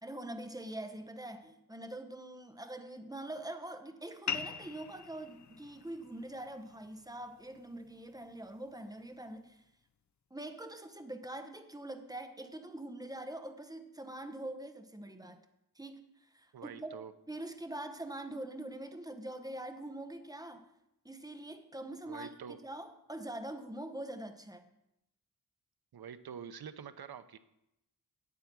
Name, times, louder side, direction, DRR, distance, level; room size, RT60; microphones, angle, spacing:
voice 1, 0.0-9.6 10.3-15.4 15.7-20.7 21.0-24.7, right 1 dB, 10° right, 7 dB, 0.9 m, -44 dB
sound 1, 4.3-9.3, left 7 dB, 50° left, 0.6 m, -44 dB
voice 2, 16.5-17.1 22.1-22.6 25.9-27.4, right 7 dB, 75° right, 12 dB, 0.7 m, -46 dB
8.5 x 8.3 x 6.0 m, 0.85 s
wide cardioid pair, 85°, 38 cm